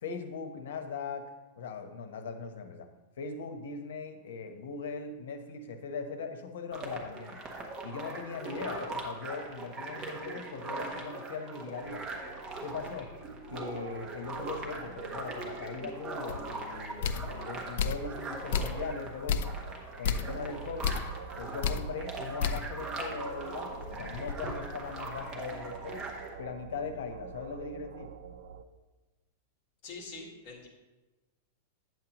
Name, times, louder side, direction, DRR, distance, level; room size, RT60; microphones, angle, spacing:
voice 1, 0.0-1.3 1.6-2.9 3.2-7.4 7.8-12.0 12.6-13.1 13.5-19.6 20.0-21.0 21.4-26.1 26.4-28.1, left 5 dB, 80° left, 7 dB, 0.9 m, -40 dB
sound 1, 6.7-26.3, right 3 dB, 20° right, 0.9 m, -41 dB
sound 2, 11.8-28.6, right 6 dB, 80° right, 0.5 m, -48 dB
sound 3, 16.3-16.4 17.0-17.3 17.8-18.1 18.5-18.9 19.3-19.6 20.0-20.3 20.8-21.1 21.6-21.9 22.4-22.7 23.1-23.2 23.7-25.2, left 6 dB, 60° left, 0.4 m, -32 dB
voice 2, 29.8-30.7, left 3 dB, 35° left, -2 dB, 1.7 m, -44 dB
9.0 x 7.5 x 3.0 m, 1.1 s
supercardioid pair, 170°, 0 cm